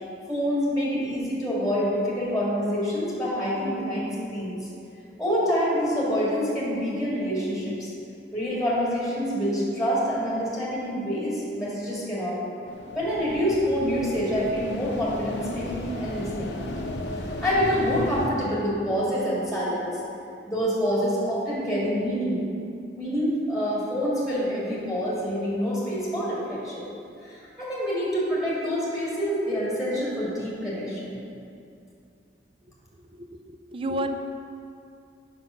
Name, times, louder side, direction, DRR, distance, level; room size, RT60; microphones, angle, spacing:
voice 1, 0.3-4.6 5.2-7.9 8.3-12.4 12.9-16.5 17.2-20.0 20.5-22.4 22.9-26.9 27.2-31.2, equal, ahead, -7 dB, 1.8 m, -26 dB
sound 1, 12.7-18.3, left 1 dB, 70° left, 0.7 m, -34 dB
voice 2, 33.1-34.1, right 1 dB, 30° right, 7 dB, 0.4 m, -31 dB
6.0 x 5.9 x 5.6 m, 2.6 s
head